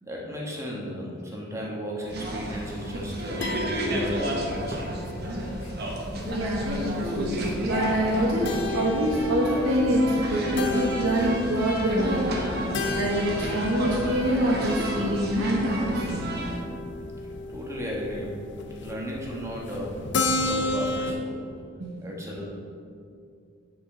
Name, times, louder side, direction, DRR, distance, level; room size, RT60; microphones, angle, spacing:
voice 1, 0.0-5.1 17.5-18.4 18.8-21.5 22.0-22.4, equal, 15° right, -3 dB, 1.2 m, -34 dB
sound 1, 2.0-21.1, left 2 dB, 60° left, 0.6 m, -35 dB
sound 2, 2.1-16.6, right 1 dB, 55° right, 1.1 m, -31 dB
voice 2, 6.3-12.3 12.9-16.3 21.8-22.0, equal, 85° right, -4 dB, 0.9 m, -25 dB
9.3 x 5.2 x 3.7 m, 2.4 s
head